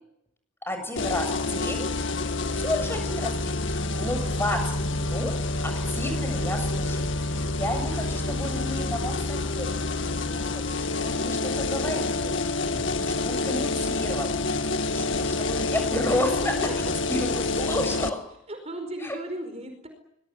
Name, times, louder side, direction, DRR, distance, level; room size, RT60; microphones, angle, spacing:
voice 1, 0.6-1.9 2.5-5.3 5.6-9.7 10.2-16.5 17.1-18.2 19.0-19.2, left 1 dB, 10° left, 6 dB, 7.4 m, -32 dB
sound 1, 1.0-18.1, left 2 dB, 65° left, 2.0 m, -28 dB
voice 2, 3.9-4.3 12.6-13.4 16.4-17.2 18.5-19.9, right 1 dB, 30° right, 6 dB, 4.8 m, -38 dB
25.0 x 21.5 x 10.0 m, 0.77 s
head